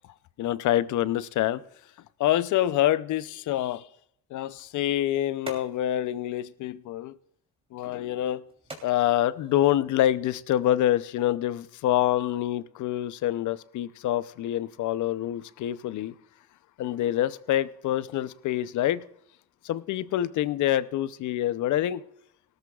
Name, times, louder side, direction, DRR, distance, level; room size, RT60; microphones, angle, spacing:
voice 1, 0.4-1.6 2.2-3.9 4.3-7.2 7.7-8.4 8.8-16.2 16.8-19.0 19.6-22.0, left 13 dB, 75° left, 0.6 m, -26 dB
sound 1, 4.4-10.4, right 2 dB, 20° right, 3.1 m, -49 dB
18.5 x 13.0 x 2.4 m
cardioid pair, 90°, 30 cm